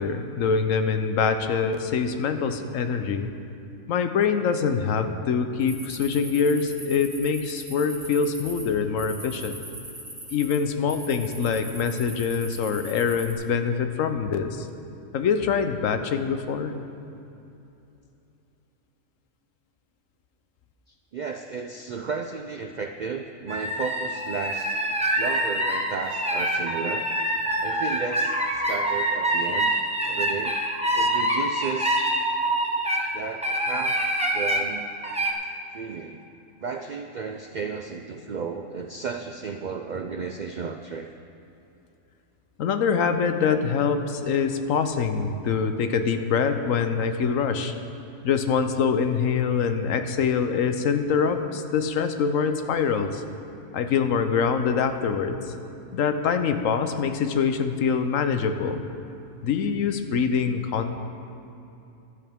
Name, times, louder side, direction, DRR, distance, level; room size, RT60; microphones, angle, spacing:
voice 1, 0.0-3.3 3.9-9.6 10.3-14.7 15.1-16.7 42.6-47.7 48.2-53.2 53.7-55.5 55.9-58.8 59.4-61.0, left 6 dB, 75° left, 8 dB, 1.1 m, -24 dB
sound 1, 5.6-8.6 9.0-10.6 10.9-13.3, right 1 dB, 25° right, 2.5 m, -41 dB
voice 2, 20.9-24.8 25.2-27.1 27.6-29.7 30.0-30.6 30.9-32.1 33.1-34.0 34.3-34.9 35.7-36.2 36.6-41.1, right 5 dB, 75° right, 5 dB, 0.4 m, -33 dB
sound 2, 23.5-33.1 33.4-34.6 35.0-35.3, right 1 dB, 5° right, 0.8 m, -25 dB
15.5 x 11.5 x 3.6 m, 2.8 s
omnidirectional pair, 1.4 m